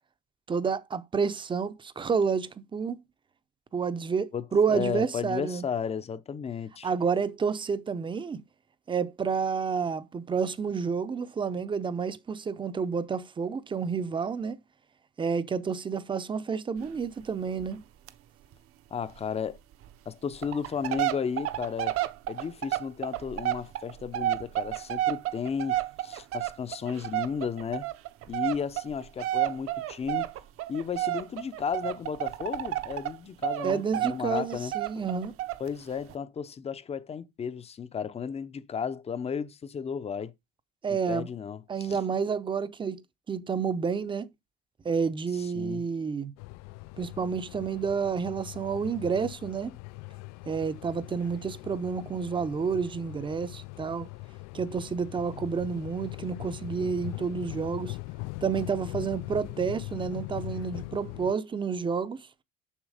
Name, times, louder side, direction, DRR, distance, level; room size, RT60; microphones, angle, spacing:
voice 1, 0.5-3.0 3.7-5.6 6.8-8.4 8.9-14.6 15.2-17.8 33.6-35.3 40.8-41.3 41.7-43.0 43.3-44.3 44.8-46.3 47.0-49.8 50.5-54.1 54.5-58.0 58.4-62.3, right 6 dB, 15° right, 0.6 m, -29 dB
voice 2, 4.3-6.9 18.9-19.6 20.1-22.0 22.3-27.9 28.3-30.3 30.7-35.1 35.6-40.3 41.1-42.0 45.5-45.8, left 6 dB, 20° left, 0.6 m, -34 dB
sound 1, 16.8-16.9 17.2-17.3 17.6-17.8 18.1-18.2 18.5-18.6 19.2-19.3 19.8-19.9 20.3-33.2 33.4-35.7 36.1-36.2, right 14 dB, 50° right, 0.8 m, -31 dB
sound 2, 46.4-61.3, left 23 dB, 65° left, 0.4 m, -41 dB
7.3 x 6.1 x 4.9 m
cardioid pair, 135°, 29 cm